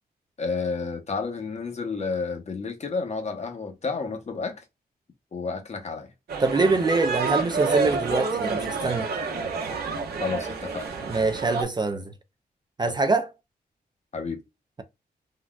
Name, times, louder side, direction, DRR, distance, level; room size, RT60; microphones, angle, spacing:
voice 1, 0.4-4.6 5.3-6.1 10.2-10.9 14.1-14.4, left 4 dB, 45° left, 0.8 m, -31 dB
sound 1, 6.3-11.6, right 4 dB, 75° right, 1.0 m, -28 dB
voice 2, 6.4-9.1 11.1-12.1 12.8-13.3, right 3 dB, 25° right, 0.4 m, -24 dB
3.8 x 2.2 x 2.3 m
wide cardioid pair, 115°, 17 cm